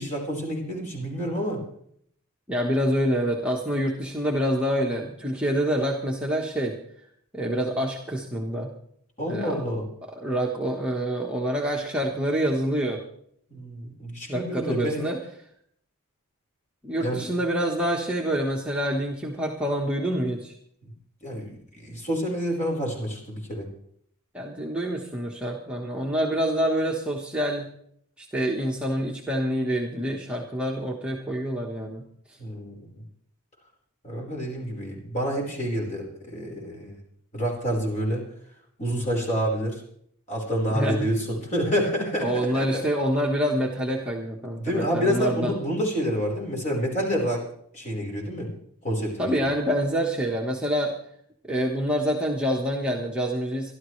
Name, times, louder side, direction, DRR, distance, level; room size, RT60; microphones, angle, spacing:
voice 1, 0.0-1.6 9.2-9.8 13.5-15.0 17.0-17.3 21.2-23.7 32.4-33.0 34.0-37.0 37.3-38.2 38.8-39.8 40.3-42.8 44.6-47.4 47.7-48.5 48.8-49.5, equal, 35° left, -1 dB, 4.6 m, -28 dB
voice 2, 2.5-6.8 7.3-8.7 9.3-9.6 10.2-13.0 14.3-15.2 16.8-20.5 24.3-27.7 28.2-32.4 40.7-41.1 42.2-45.5 49.2-50.9 51.5-53.7, equal, 5° right, -2 dB, 1.4 m, -26 dB
26.0 x 12.0 x 3.3 m, 0.67 s
head